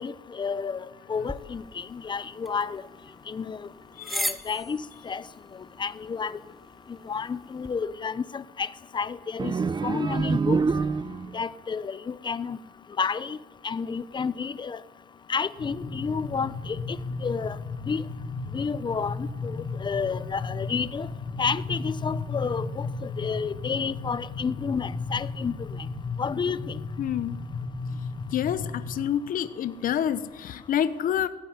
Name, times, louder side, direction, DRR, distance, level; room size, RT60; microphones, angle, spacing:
voice 1, 0.0-2.8 3.3-3.6 4.1-5.2 5.8-6.4 7.1-8.7 8.9-9.5 9.8-10.6 11.3-12.6 13.0-13.4 13.6-14.8 15.3-17.0 17.2-17.6 17.9-18.0 18.5-21.1 21.4-25.5 26.2-26.8, left 5 dB, 25° left, 16 dB, 1.0 m, -30 dB
sound 1, 1.2-7.7, equal, ahead, 1.2 m, -39 dB
sound 2, 9.4-11.4, right 4 dB, 25° right, 0.8 m, -26 dB
sound 3, 15.6-29.0, left 3 dB, 80° left, 5.4 m, -35 dB
voice 2, 27.0-27.4 28.3-31.3, left 10 dB, 55° left, 13 dB, 1.0 m, -28 dB
16.5 x 16.5 x 9.7 m, 1.2 s
cardioid pair, 110°, 17 cm